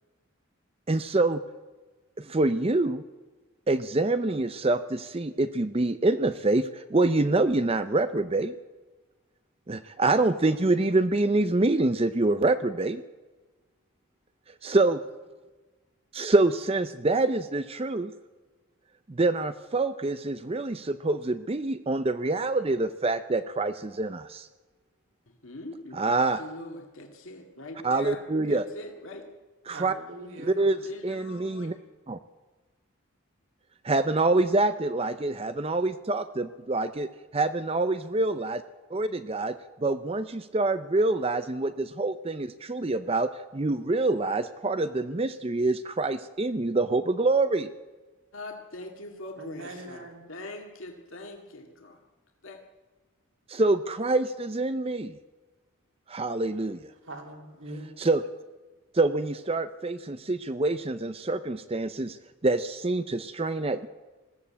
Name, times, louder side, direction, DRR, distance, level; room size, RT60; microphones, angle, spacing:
voice 1, 0.9-1.4 2.2-3.0 3.7-8.6 9.7-13.0 14.6-15.0 16.1-18.1 19.1-24.5 25.9-26.4 27.8-28.6 29.7-29.9 30.5-30.8 31.0-31.7 32.1-32.2 33.8-37.1 37.3-38.6 38.9-39.5 39.8-47.7 53.5-55.1 56.1-56.8 58.0-58.2 58.9-62.2 62.4-63.9, right 2 dB, 25° right, 11 dB, 0.5 m, -26 dB
voice 2, 25.3-29.3 30.6-31.7 48.3-52.0 52.4-52.6, left 2 dB, 65° left, 2 dB, 2.1 m, -42 dB
voice 3, 29.7-30.6 49.4-50.3 57.0-57.9, right 2 dB, 60° right, 3 dB, 3.4 m, -42 dB
20.5 x 15.0 x 8.6 m, 1.3 s
head